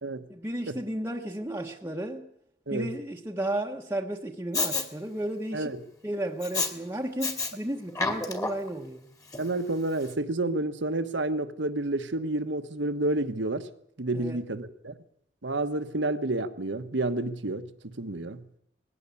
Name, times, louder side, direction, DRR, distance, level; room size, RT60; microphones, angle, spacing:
voice 1, 0.3-2.3 2.7-5.7 6.0-9.1 14.1-14.4, right 1 dB, 15° right, 1.2 m, -33 dB
Respiratory sounds, 4.5-4.8 6.4-6.7 7.2-7.5 7.9-8.7 9.3-9.4, left 3 dB, 20° left, 2.3 m, -29 dB
voice 2, 9.4-13.7 14.0-14.9 15.4-18.4, right 2 dB, 75° right, 1.3 m, -30 dB
20.5 x 16.5 x 8.4 m
head